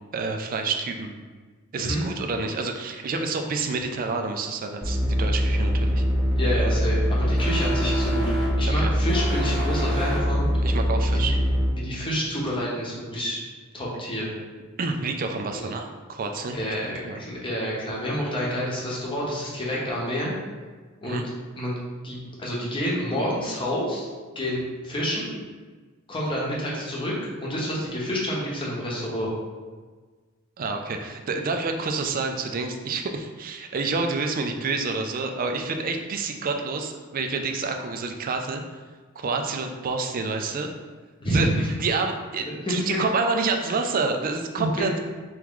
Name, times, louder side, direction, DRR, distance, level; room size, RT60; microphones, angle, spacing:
voice 1, 0.1-1.1 1.7-6.0 8.8-8.9 10.6-11.3 14.8-16.6 17.0-17.2 21.0-21.2 30.6-38.6 39.2-40.7 41.3-41.5 41.8-44.9, right 4 dB, 40° right, 4 dB, 0.4 m, -28 dB
sound 1, 4.8-11.7, equal, ahead, 0.9 m, -23 dB
voice 2, 6.4-10.5 11.1-11.4 11.8-13.4 13.7-14.3 15.5-15.7 16.5-20.3 21.0-21.2 21.6-21.8 22.0-24.1 24.3-25.3 26.1-29.3 41.2-41.7 42.6-43.0 43.7-43.8 44.6-44.9, equal, 25° left, -5 dB, 0.9 m, -28 dB
3.5 x 3.0 x 3.7 m, 1.4 s
head